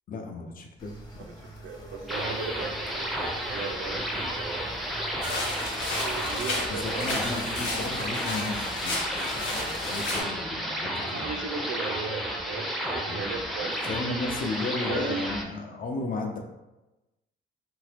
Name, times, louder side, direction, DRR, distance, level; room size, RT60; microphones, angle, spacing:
voice 1, 0.1-1.2 6.7-11.3 13.0-13.3 13.8-16.4, left 3 dB, 45° left, 3 dB, 0.6 m, -34 dB
sound 1, 0.8-11.4, right 1 dB, 20° left, 0.9 m, -46 dB
voice 2, 1.6-4.8 5.4-5.6 6.0-7.2 11.0-13.8 14.0-14.2 14.8-15.2, right 5 dB, 90° right, 3 dB, 0.5 m, -37 dB
sound 2, 2.1-15.4, equal, ahead, 0.5 m, -32 dB
sound 3, 5.2-10.2, left 2 dB, 85° left, 0.8 m, -33 dB
2.9 x 2.7 x 3.4 m, 1.0 s
cardioid pair, 90°, 20 cm